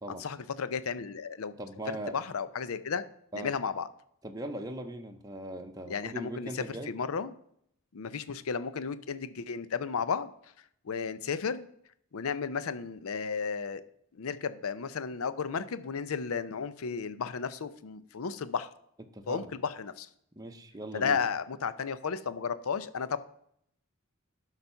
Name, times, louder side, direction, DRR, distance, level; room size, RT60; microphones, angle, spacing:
voice 1, 0.2-1.5 1.9-3.0 3.3-3.9 5.9-7.3 7.9-10.3 10.8-11.7 12.1-13.8 14.1-18.7 19.3-20.1 20.9-23.2, left 6 dB, 85° left, 14 dB, 0.6 m, -33 dB
voice 2, 1.6-2.1 3.3-3.5 4.2-6.9 19.1-19.5 20.4-21.2, right 1 dB, 15° right, 4 dB, 0.7 m, -39 dB
11.5 x 4.1 x 5.6 m, 0.70 s
head